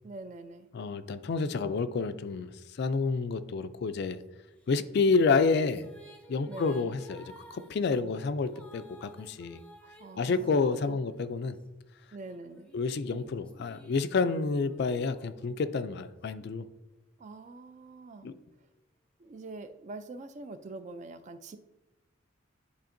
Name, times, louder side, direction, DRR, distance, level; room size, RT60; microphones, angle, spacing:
voice 1, 0.0-0.7 6.4-6.9 9.8-11.1 12.1-12.7 17.2-18.3 19.2-21.6, right 3 dB, 35° right, 10 dB, 0.3 m, -45 dB
voice 2, 0.7-4.2 4.7-5.9 6.3-9.6 10.2-11.6 12.7-16.7 18.2-18.3, left 4 dB, 55° left, 12 dB, 0.3 m, -29 dB
sound 1, 4.6-11.6 12.2-16.0, equal, 5° left, 0.6 m, -54 dB
10.5 x 4.2 x 2.6 m, 1.0 s
head